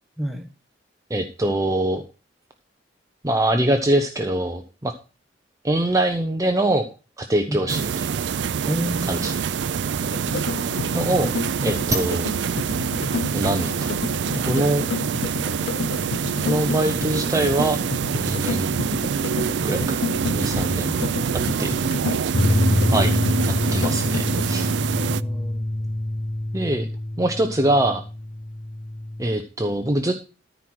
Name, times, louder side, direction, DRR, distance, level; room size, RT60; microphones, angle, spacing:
voice 1, 0.2-0.5 7.5-7.8 8.7-9.4 10.5-11.0 20.8-21.3 24.9-25.9, equal, ahead, 4 dB, 1.3 m, -32 dB
voice 2, 1.1-2.0 3.2-4.9 5.6-6.8 7.2-8.1 9.1-9.3 10.3-10.4 10.9-11.3 11.6-12.3 13.3-13.9 14.4-14.8 16.4-17.8 18.1-18.8 19.6-19.8 20.3-20.9 21.6-21.7 22.9-23.1 23.7-24.7 26.5-26.9 27.2-28.0 29.2-30.1, right 1 dB, 20° right, 5 dB, 0.7 m, -23 dB
sound 1, 7.7-25.2, right 6 dB, 75° right, 0.4 m, -25 dB
sound 2, 10.0-24.5, left 5 dB, 75° left, 0.4 m, -31 dB
sound 3, 22.3-29.2, left 1 dB, 35° left, 1.1 m, -25 dB
13.5 x 4.6 x 6.1 m, 0.33 s
head